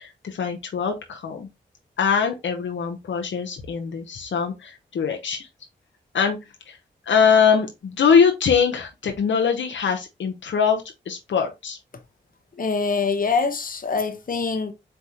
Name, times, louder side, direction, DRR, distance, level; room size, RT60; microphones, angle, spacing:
voice 1, 0.0-1.5 2.0-5.5 6.1-6.4 6.7-6.8 7.1-11.8, left 6 dB, 75° left, 0.7 m, -22 dB
voice 2, 12.6-14.7, left 4 dB, 45° left, 0.9 m, -24 dB
4.2 x 3.4 x 2.8 m
cardioid pair, 45°, 19 cm